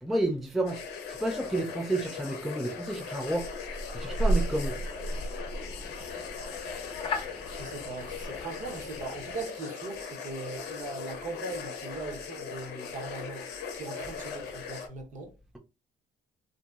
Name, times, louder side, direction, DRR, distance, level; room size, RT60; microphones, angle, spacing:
voice 1, 0.0-3.5 3.9-4.8, right 1 dB, ahead, 0.3 m, -31 dB
sound 1, 0.7-14.9, left 6 dB, 85° left, 0.6 m, -39 dB
sound 2, 3.3-9.4, right 1 dB, 30° left, 0.7 m, -34 dB
voice 2, 7.5-13.5 13.7-15.3, right 3 dB, 50° right, 0.8 m, -40 dB
2.8 x 2.6 x 2.3 m
cardioid pair, 110°, 17 cm